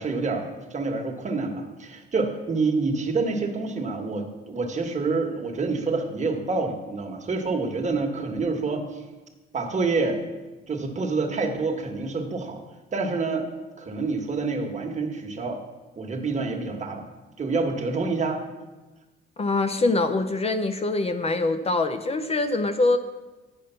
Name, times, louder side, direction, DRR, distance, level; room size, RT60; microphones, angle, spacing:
voice 1, 0.0-9.0 9.5-10.2 10.7-12.6 12.9-13.5 13.8-15.6 16.0-17.1 17.4-18.4, right 3 dB, 35° right, 3 dB, 1.3 m, -27 dB
voice 2, 19.4-23.0, left 2 dB, 30° left, 9 dB, 0.6 m, -24 dB
10.0 x 5.1 x 5.6 m, 1.2 s
cardioid pair, 90°, 20 cm